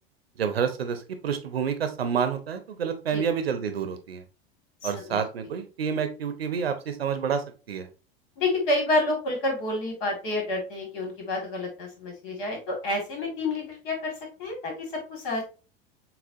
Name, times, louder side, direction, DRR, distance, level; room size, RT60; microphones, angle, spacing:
voice 1, 0.4-4.2 4.8-7.9, right 7 dB, 75° right, 8 dB, 0.7 m, -29 dB
voice 2, 4.8-5.2 8.4-14.1 14.4-15.4, left 2 dB, 55° left, 2 dB, 1.9 m, -29 dB
6.8 x 2.4 x 2.6 m, 0.33 s
figure-of-eight pair, 80°, 31 cm